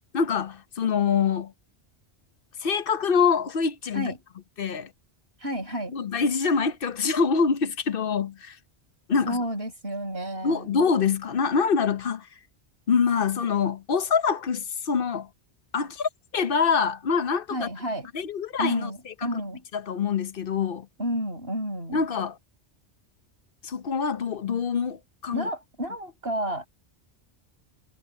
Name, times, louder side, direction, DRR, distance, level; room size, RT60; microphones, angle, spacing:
voice 1, 0.1-1.5 2.6-4.1 4.6-4.9 5.9-8.6 9.1-9.4 10.4-12.3 12.9-15.3 15.7-17.7 18.1-19.1 19.7-20.9 21.9-22.4 23.6-25.5, left 6 dB, 55° left, 1.0 m, -25 dB
voice 2, 5.4-5.9 9.3-10.8 17.5-18.1 18.6-19.6 21.0-22.0 25.3-26.7, equal, 60° right, 6.8 m, -31 dB
omnidirectional pair, 1.1 m